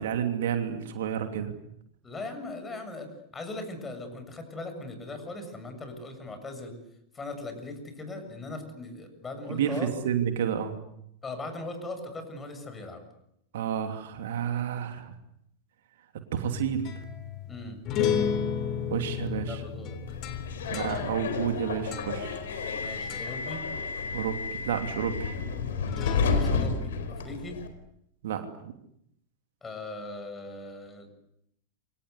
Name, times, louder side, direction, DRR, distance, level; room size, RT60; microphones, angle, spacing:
voice 1, 0.0-1.5 9.5-10.7 13.5-15.1 16.3-16.9 18.9-19.6 20.7-22.4 24.1-25.3 28.2-28.7, right 9 dB, 55° right, 6 dB, 2.9 m, -30 dB
voice 2, 2.0-3.1 3.3-6.8 7.1-9.9 11.2-13.0 17.5-17.8 19.5-20.0 20.6-20.9 22.7-23.7 25.8-27.6 29.6-31.1, left 2 dB, 15° left, 7 dB, 7.2 m, -39 dB
sound 1, 16.4-22.8 23.1-23.5 25.9-26.8, left 7 dB, 35° left, 3.7 m, -33 dB
Subway metro underground, 20.1-27.7, left 5 dB, 60° left, 4.3 m, -31 dB
28.5 x 25.0 x 8.3 m, 0.77 s
figure-of-eight pair, 90°, 0 cm